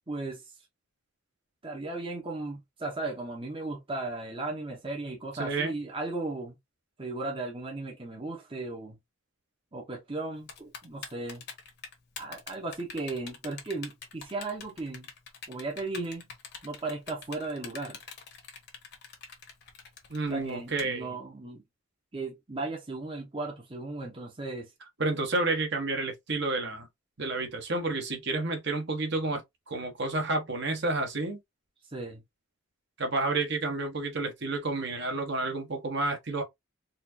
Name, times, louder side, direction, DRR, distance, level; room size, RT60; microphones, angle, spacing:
voice 1, 0.1-0.5 1.6-6.5 7.0-9.0 9.7-11.4 12.2-15.1 15.5-16.3 16.6-18.0 20.3-21.6 22.1-24.7 31.9-32.2, right 2 dB, 25° right, 0.9 m, -36 dB
voice 2, 5.4-5.7 20.1-21.1 25.0-26.9 27.2-31.4 33.0-36.4, right 2 dB, 55° right, 1.1 m, -30 dB
Typing, 10.5-20.8, left 6 dB, 50° left, 1.2 m, -44 dB
4.2 x 2.5 x 2.7 m
head